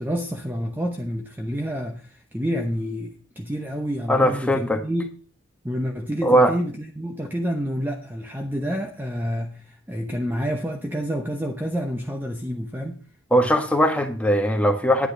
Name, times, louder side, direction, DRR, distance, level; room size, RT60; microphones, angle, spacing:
voice 1, 0.0-5.1 5.6-13.0, equal, 10° right, 0.8 m, -28 dB
voice 2, 4.1-4.8 6.2-6.5 13.3-15.1, equal, 5° left, 1.3 m, -19 dB
10.5 x 9.5 x 5.2 m
head